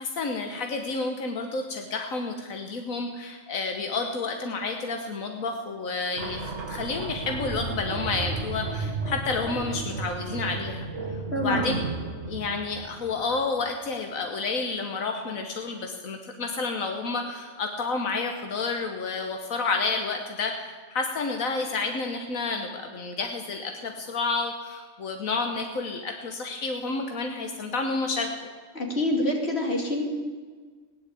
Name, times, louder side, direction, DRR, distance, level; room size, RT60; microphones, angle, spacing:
voice 1, 0.0-11.7 12.3-28.3, left 4 dB, 85° left, 4 dB, 1.6 m, -30 dB
sound 1, 6.2-13.6, right 3 dB, 60° right, 1.9 m, -33 dB
voice 2, 11.3-11.7 28.7-30.0, left 1 dB, 50° left, 1 dB, 2.8 m, -26 dB
16.5 x 10.5 x 8.4 m, 1.5 s
omnidirectional pair, 1.4 m